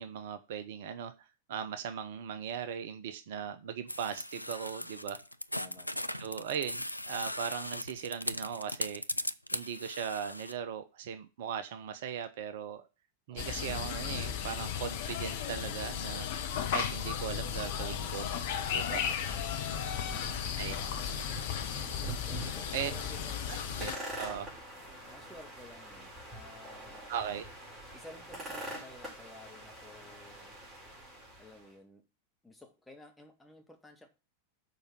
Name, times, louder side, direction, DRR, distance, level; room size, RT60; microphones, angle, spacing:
voice 1, 0.0-5.2 6.2-9.0 9.5-12.9 13.3-16.3 16.7-18.3 18.7-19.0 20.6-20.7 22.7-22.9 23.5-23.9 24.2-24.5 27.1-27.5, right 8 dB, 55° right, 0.8 m, -38 dB
sound 1, 3.9-10.5, left 1 dB, 85° left, 0.4 m, -38 dB
voice 2, 5.5-6.5 13.3-13.7 22.2-23.7 25.1-27.1 27.9-30.6 31.4-32.0 32.4-34.1, left 2 dB, 5° left, 2.0 m, -54 dB
sound 2, 13.4-24.0, left 8 dB, 50° left, 1.0 m, -35 dB
sound 3, 17.7-31.7, right 1 dB, 20° right, 4.5 m, -45 dB
6.8 x 5.1 x 6.3 m
figure-of-eight pair, 90°, 0 cm